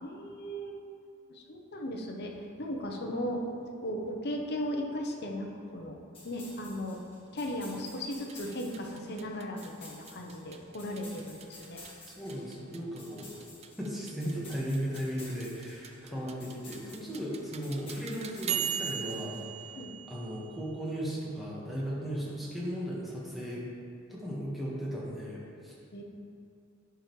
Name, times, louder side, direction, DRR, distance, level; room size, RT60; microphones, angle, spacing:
voice 1, 0.0-0.8 1.3-6.0 6.2-7.0 7.3-11.8 16.1-16.2 19.7-19.9 25.9-26.0, equal, 50° left, 1 dB, 0.8 m, -37 dB
sound 1, 6.1-19.6, left 2 dB, 25° left, 1.7 m, -52 dB
sound 2, 8.3-20.9, right 9 dB, 30° right, 0.4 m, -41 dB
voice 2, 12.2-13.3 13.8-19.4 20.1-23.6 24.1-25.7, equal, ahead, -7 dB, 1.4 m, -36 dB
11.0 x 5.1 x 3.2 m, 2.5 s
head